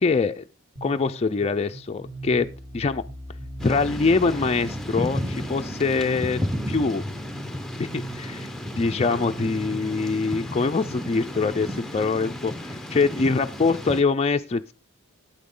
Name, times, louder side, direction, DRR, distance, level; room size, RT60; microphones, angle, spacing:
voice 1, 0.0-0.4 0.8-3.0 3.6-6.4 6.7-7.0 7.8-8.5 8.8-14.7, left 4 dB, 30° left, 6 dB, 0.4 m, -24 dB
sound 1, 0.8-10.9, right 2 dB, 40° right, 4.0 m, -40 dB
Thunder / Rain, 3.6-14.0, left 1 dB, ahead, 0.8 m, -33 dB
12.0 x 8.6 x 3.7 m, 0.32 s
head